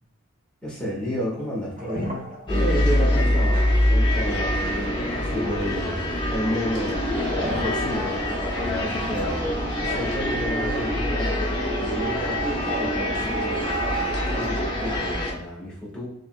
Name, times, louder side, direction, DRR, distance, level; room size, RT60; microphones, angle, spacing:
voice 1, 0.6-4.6 5.1-6.0 6.3-7.1 7.4-11.5 11.7-16.1, equal, 5° left, -6 dB, 1.5 m, -32 dB
sound 1, 1.3-1.4 1.7-2.8 6.9-8.8 9.2-9.7 10.1-10.3 10.7-11.3 11.9-12.0 12.2-13.7 14.5-15.1, equal, 40° right, 1.1 m, -36 dB
sound 2, 2.5-15.3, left 1 dB, 20° left, 1.0 m, -24 dB
sound 3, 6.0-15.1, right 4 dB, 10° right, 0.8 m, -36 dB
5.3 x 3.3 x 2.3 m, 0.79 s
head